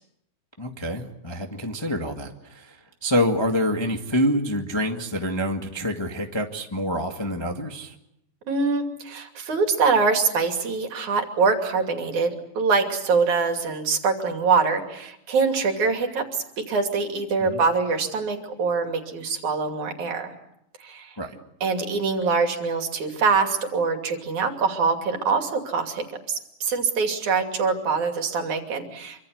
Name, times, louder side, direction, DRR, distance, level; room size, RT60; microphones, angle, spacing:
voice 1, 0.6-7.9 17.4-17.6 21.2-21.3, equal, 15° left, 3 dB, 1.2 m, -26 dB
voice 2, 8.5-20.3 20.8-21.2 21.6-29.2, right 4 dB, 70° right, 5 dB, 4.1 m, -24 dB
26.5 x 25.0 x 7.9 m, 0.78 s
omnidirectional pair, 3.6 m